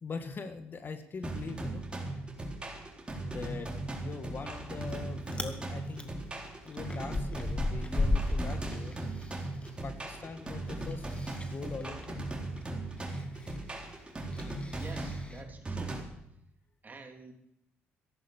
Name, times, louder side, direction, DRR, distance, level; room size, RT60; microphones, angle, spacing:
voice 1, 0.0-1.9 3.2-6.2 6.6-9.0 9.8-12.2, left 4 dB, 45° left, 9 dB, 1.6 m, -42 dB
sound 1, 1.2-16.0, right 2 dB, 20° right, 3.9 m, -38 dB
Chewing mastication, 4.5-5.0 5.2-5.6 6.0-9.7 10.0-15.4, left 2 dB, 20° left, 2.0 m, -36 dB
voice 2, 14.7-16.0 16.8-17.3, right 3 dB, 35° right, 4 dB, 3.2 m, -48 dB
14.0 x 11.0 x 7.2 m, 0.79 s
supercardioid pair, 65°, 5 cm